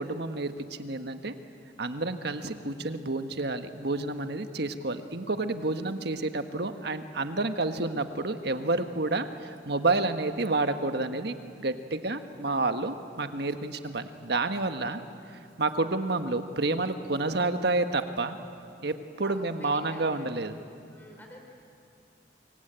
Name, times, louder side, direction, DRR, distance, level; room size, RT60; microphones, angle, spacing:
voice 1, 0.0-1.3 1.8-15.0 15.6-18.4 18.8-20.6, right 2 dB, 65° right, 8 dB, 1.5 m, -29 dB
voice 2, 19.2-20.3 20.9-21.4, left 1 dB, 10° left, 0 dB, 3.2 m, -49 dB
26.5 x 23.5 x 9.0 m, 2.5 s
head